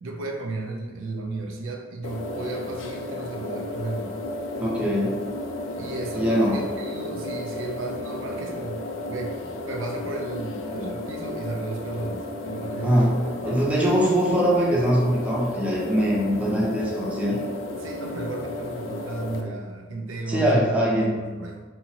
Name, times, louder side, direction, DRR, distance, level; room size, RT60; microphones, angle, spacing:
voice 1, 0.0-4.2 5.8-9.4 9.6-13.6 17.8-21.6, right 3 dB, 80° right, 2 dB, 0.4 m, -34 dB
sound 1, 2.0-19.4, left 2 dB, 75° left, 0.3 m, -33 dB
voice 2, 4.6-5.1 6.1-6.6 12.8-13.1 13.4-17.4 20.3-21.1, equal, 5° right, -5 dB, 0.5 m, -22 dB
2.7 x 2.4 x 2.8 m, 1.3 s
head